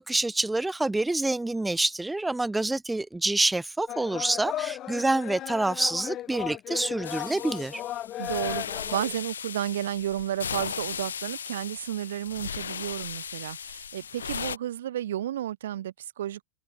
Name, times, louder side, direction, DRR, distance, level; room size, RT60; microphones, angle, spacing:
voice 1, 0.0-7.8, right 2 dB, 5° right, 0.5 m, -27 dB
sound 1, 3.9-9.2, left 13 dB, 30° left, 0.8 m, -35 dB
sound 2, 7.0-14.6, left 7 dB, 70° left, 1.3 m, -37 dB
voice 2, 8.2-16.4, right 12 dB, 60° right, 2.8 m, -32 dB
open air
figure-of-eight pair, 90°, 0 cm